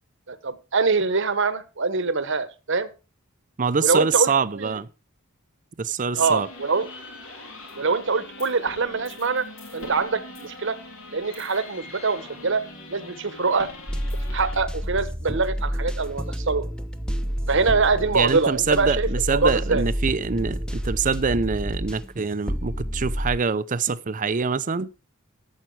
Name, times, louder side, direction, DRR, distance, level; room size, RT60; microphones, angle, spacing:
voice 1, 0.3-2.9 3.8-4.7 6.2-6.9 7.8-9.5 9.7-10.8 11.1-12.6 12.9-13.7 14.3-16.6 17.5-19.8, right 4 dB, 60° right, 1.1 m, -24 dB
voice 2, 3.6-4.9 5.8-6.5 18.1-24.9, right 5 dB, 40° right, 0.6 m, -25 dB
sound 1, 6.1-14.6, left 2 dB, 70° left, 3.2 m, -42 dB
sound 2, 13.9-23.4, equal, 5° left, 0.9 m, -29 dB
13.5 x 7.5 x 4.7 m
head